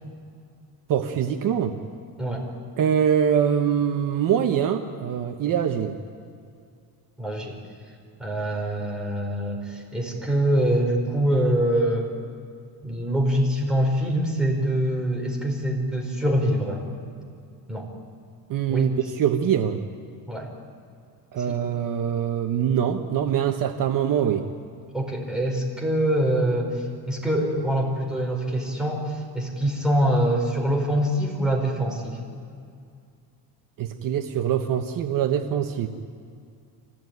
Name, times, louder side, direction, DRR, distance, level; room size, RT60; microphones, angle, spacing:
voice 1, 0.9-1.8 2.8-6.0 18.5-18.9 19.2-19.8 21.3-24.4 33.8-35.9, right 9 dB, 50° right, 5 dB, 1.2 m, -23 dB
voice 2, 7.2-7.5 8.2-12.1 12.8-16.8 17.7-17.9 18.7-19.0 20.3-20.5 21.5-21.6 24.9-32.2, right 1 dB, ahead, -1 dB, 4.6 m, -24 dB
24.5 x 17.0 x 9.4 m, 2.4 s
cardioid pair, 135°, 42 cm